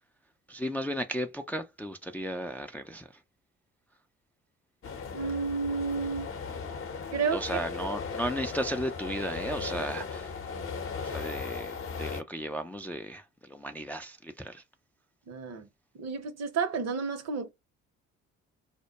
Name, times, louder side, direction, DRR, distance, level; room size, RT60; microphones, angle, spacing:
voice 1, 0.5-3.1 7.3-10.3 11.0-14.6, equal, 5° left, 0.3 m, -35 dB
sound 1, 4.8-12.2, left 5 dB, 40° left, 0.7 m, -37 dB
voice 2, 5.1-6.3 7.1-7.5 15.3-15.7 15.9-17.5, right 5 dB, 55° right, 0.8 m, -31 dB
2.2 x 2.1 x 2.8 m
hypercardioid pair, 55°, 32 cm